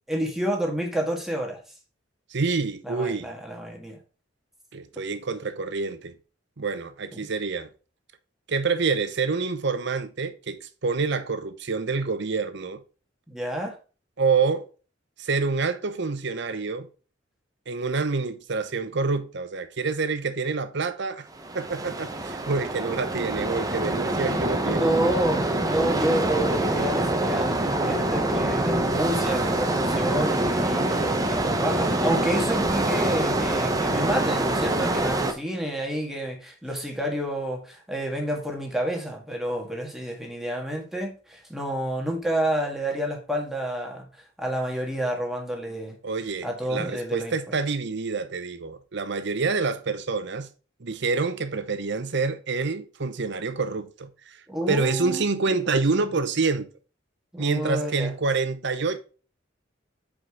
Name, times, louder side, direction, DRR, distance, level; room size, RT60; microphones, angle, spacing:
voice 1, 0.1-1.6 2.8-4.0 7.1-7.3 13.3-13.8 24.6-44.1 44.4-46.0 46.4-47.3 54.5-55.6 57.3-58.1, right 1 dB, ahead, 1.7 m, -29 dB
voice 2, 2.3-3.3 4.7-6.2 6.6-7.7 8.5-12.8 14.2-14.6 15.2-16.9 17.7-21.3 21.5-24.9 46.0-50.5 50.8-54.4 54.7-56.7 57.4-59.0, right 4 dB, 65° right, 0.8 m, -27 dB
sound 1, 21.4-35.3, right 1 dB, 20° right, 0.8 m, -25 dB
7.7 x 4.9 x 3.6 m
head